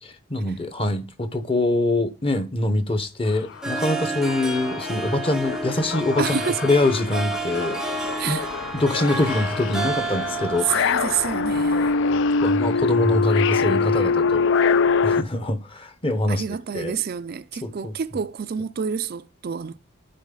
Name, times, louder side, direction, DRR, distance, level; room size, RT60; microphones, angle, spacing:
voice 1, 0.3-8.4 8.7-10.7 12.4-14.4 15.0-16.4 16.7-17.0 17.6-17.9, left 2 dB, 25° left, 0.9 m, -24 dB
sound 1, 3.3-3.4 3.7-15.2, left 5 dB, 55° left, 0.3 m, -24 dB
Harp, 3.5-12.2, right 3 dB, 5° right, 0.7 m, -31 dB
voice 2, 6.2-6.6 8.2-8.5 10.7-11.9 16.3-19.8, right 7 dB, 45° right, 0.4 m, -28 dB
10.5 x 4.8 x 3.7 m
head